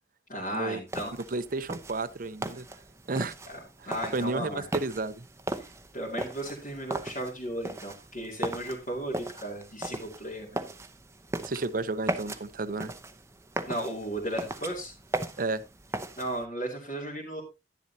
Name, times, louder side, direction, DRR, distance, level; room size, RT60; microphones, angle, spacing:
voice 1, 0.3-1.2 3.5-4.6 5.6-10.6 13.7-14.9 16.2-17.4, right 1 dB, 45° left, 2.5 m, -35 dB
sound 1, 0.9-16.4, right 2 dB, 15° right, 0.7 m, -38 dB
voice 2, 1.3-2.7 3.1-3.3 3.8-5.3 11.4-12.9 15.4-15.6, right 3 dB, 50° right, 0.6 m, -32 dB
11.0 x 10.5 x 2.8 m
head